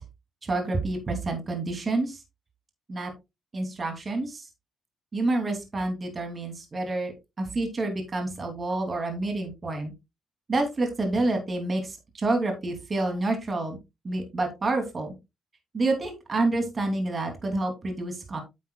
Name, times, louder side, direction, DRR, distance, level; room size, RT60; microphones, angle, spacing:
voice 1, 0.4-2.2 2.9-3.1 3.5-4.5 5.1-7.1 7.4-9.9 10.5-13.8 14.0-15.1 15.7-18.4, right 2 dB, 35° right, 4 dB, 2.9 m, -28 dB
9.1 x 8.3 x 2.3 m, 0.23 s
cardioid pair, 90°, 0 cm